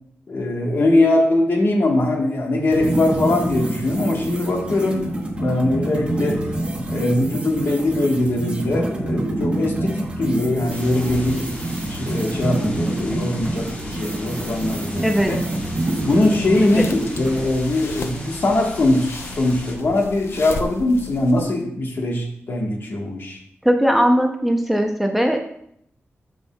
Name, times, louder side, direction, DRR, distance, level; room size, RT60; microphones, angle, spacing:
voice 1, 0.3-5.1 5.3-6.4 6.9-11.5 11.9-15.4 16.0-23.4, left 2 dB, 55° left, 1 dB, 1.3 m, -21 dB
sound 1, 2.7-17.5, right 1 dB, 25° right, 1.1 m, -27 dB
sound 2, 10.7-19.7, left 1 dB, 30° left, 1.6 m, -38 dB
sound 3, 16.3-21.6, left 3 dB, 80° left, 0.7 m, -36 dB
voice 2, 23.6-25.4, equal, 5° right, 3 dB, 0.6 m, -19 dB
12.5 x 5.4 x 2.3 m, 0.70 s
wide cardioid pair, 155°, 4 cm